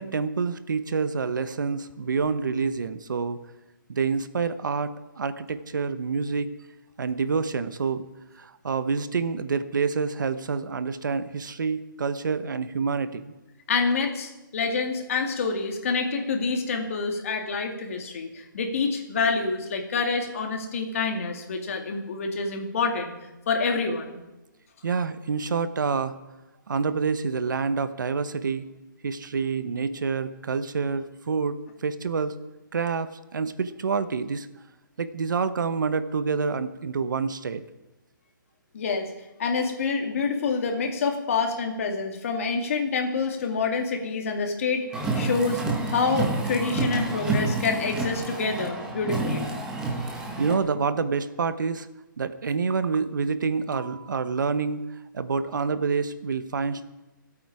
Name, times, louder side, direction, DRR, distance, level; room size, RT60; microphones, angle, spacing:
voice 1, 0.0-3.4 3.9-6.5 7.0-8.0 8.4-13.3 24.8-26.2 26.7-28.7 29.0-32.3 32.7-34.5 35.0-37.6 50.4-51.9 52.2-54.8 55.1-56.8, right 5 dB, 65° right, 12 dB, 1.1 m, -27 dB
voice 2, 13.7-23.1 23.5-24.2 38.7-39.1 39.4-44.8 45.2-45.6 45.9-49.5, left 4 dB, 40° left, 3 dB, 2.5 m, -27 dB
Car, 44.9-50.6, right 3 dB, 5° right, 1.3 m, -29 dB
26.5 x 8.8 x 4.9 m, 1.0 s
hypercardioid pair, 170°, 11 cm